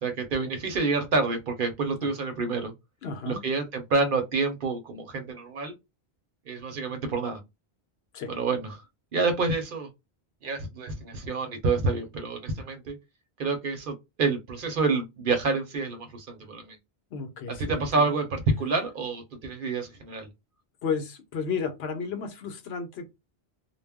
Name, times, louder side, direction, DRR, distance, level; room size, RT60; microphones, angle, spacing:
voice 1, 0.0-2.7 3.2-5.7 6.5-7.4 8.3-8.8 9.1-9.9 10.4-13.0 13.4-16.8 17.5-20.3, right 3 dB, 60° right, 0.8 m, -28 dB
voice 2, 3.0-3.4 8.1-8.3 17.1-18.1 20.8-23.1, left 5 dB, 75° left, 0.9 m, -33 dB
2.2 x 2.0 x 3.4 m
omnidirectional pair, 1.1 m